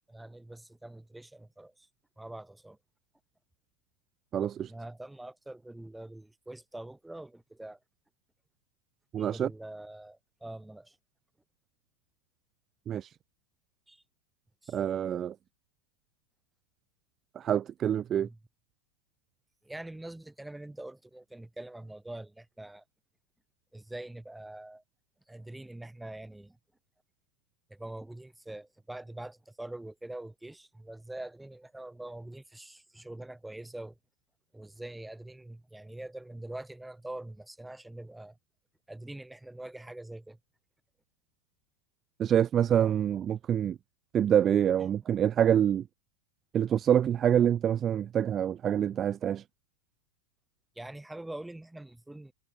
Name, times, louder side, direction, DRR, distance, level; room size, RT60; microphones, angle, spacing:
voice 1, 0.1-1.9 2.2-2.8 4.7-7.8 9.2-11.0 13.9-14.0 14.6-14.8 18.1-18.4 19.6-22.8 23.7-24.8 25.3-26.6 27.7-34.0 34.5-38.4 38.9-40.4 50.8-52.3, right 1 dB, 5° right, 7.0 m, -44 dB
voice 2, 4.3-4.7 9.1-9.5 12.9-13.2 14.7-15.4 17.3-18.3 42.2-43.8 44.1-45.9 46.5-49.4, right 9 dB, 25° right, 0.5 m, -26 dB
figure-of-eight pair, 90°, 0 cm